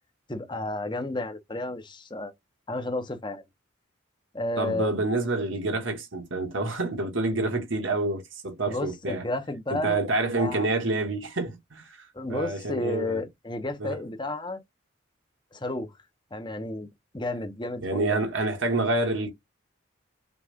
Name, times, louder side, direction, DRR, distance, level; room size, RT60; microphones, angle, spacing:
voice 1, 0.3-2.3 2.7-3.4 4.3-5.0 8.7-10.0 10.3-10.7 12.1-14.6 15.5-15.9 16.3-16.9 17.1-18.2, left 2 dB, 25° left, 0.9 m, -32 dB
voice 2, 4.6-9.2 9.7-12.0 12.3-13.2 13.8-14.0 17.8-19.3, right 2 dB, 75° right, 1.6 m, -28 dB
5.9 x 2.4 x 3.6 m
head